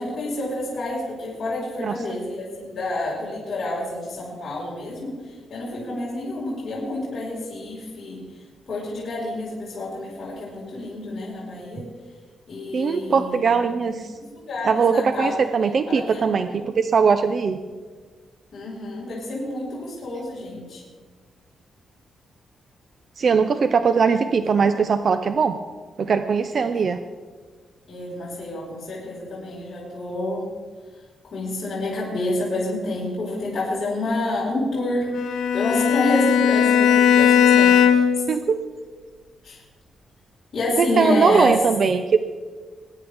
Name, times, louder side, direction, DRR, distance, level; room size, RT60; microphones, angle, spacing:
voice 1, 0.0-5.1 5.5-8.2 8.7-11.9 12.5-13.4 13.9-15.3 15.9-16.2 16.5-16.6 18.5-20.8 27.9-30.5 31.3-35.1 35.5-38.0 39.4-39.6 40.5-41.6, left 2 dB, 40° left, -8 dB, 4.6 m, -28 dB
voice 2, 1.8-2.2 12.7-14.1 14.6-17.6 23.2-25.6 26.0-27.0 38.3-38.6 40.8-42.2, right 5 dB, 45° right, 9 dB, 0.5 m, -20 dB
Bowed string instrument, 35.1-38.3, left 8 dB, 90° left, 1.4 m, -17 dB
22.0 x 10.5 x 3.4 m, 1.4 s
wide cardioid pair, 150°, 0 cm